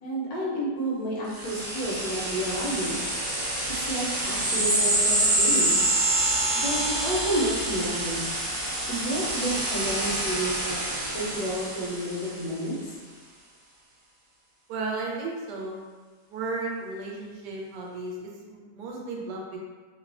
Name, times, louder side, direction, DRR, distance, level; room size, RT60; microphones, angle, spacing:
voice 1, 0.0-3.0 3.9-5.9 6.5-8.3 8.9-10.8 11.1-12.9, right 1 dB, 75° left, -4 dB, 1.1 m, -30 dB
sound 1, 1.3-12.4, right 1 dB, 60° right, 1.1 m, -27 dB
voice 2, 14.7-15.8 16.3-19.6, right 3 dB, 80° right, -2 dB, 1.2 m, -34 dB
3.1 x 2.1 x 2.4 m, 1.4 s
omnidirectional pair, 1.8 m